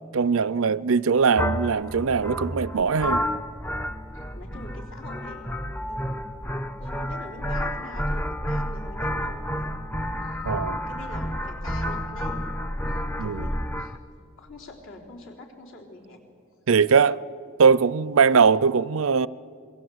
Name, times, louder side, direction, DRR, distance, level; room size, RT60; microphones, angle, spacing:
voice 1, 0.1-3.2 10.4-10.8 13.2-13.5 16.7-17.2 17.6-19.3, right 5 dB, 75° right, 0.5 m, -21 dB
sound 1, 1.4-14.0, equal, 10° left, 0.6 m, -30 dB
voice 2, 4.1-9.9 10.2-12.5 12.9-14.0 14.4-16.2, left 1 dB, 65° left, 3.9 m, -44 dB
27.0 x 22.0 x 8.0 m
head